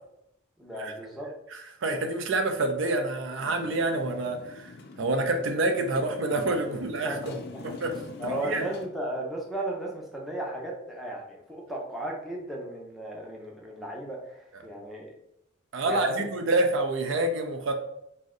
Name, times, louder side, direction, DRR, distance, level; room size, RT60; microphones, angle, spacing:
voice 1, 0.6-1.3 7.0-15.1 15.9-16.3, right 1 dB, ahead, -3 dB, 0.5 m, -35 dB
voice 2, 1.5-4.7 5.0-7.3 7.6-7.9 8.2-8.7 15.7-17.7, right 2 dB, 65° right, 5 dB, 0.4 m, -27 dB
Motorcycle, 3.4-8.9, left 3 dB, 55° left, 0.4 m, -44 dB
2.6 x 2.1 x 3.6 m, 0.77 s
head